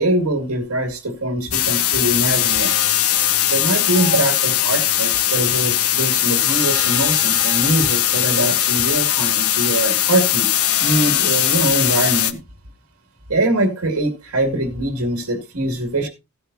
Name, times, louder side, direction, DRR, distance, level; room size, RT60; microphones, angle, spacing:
voice 1, 0.0-2.7 3.5-10.5 10.8-12.4 13.3-16.1, right 1 dB, 75° right, 4 dB, 2.3 m, -22 dB
sound 1, 1.5-12.3, left 11 dB, 70° left, 0.9 m, -19 dB
sound 2, 3.9-4.3 5.8-8.0 8.9-9.2, left 3 dB, 45° left, 2.3 m, -38 dB
15.5 x 9.4 x 2.7 m, 0.27 s
head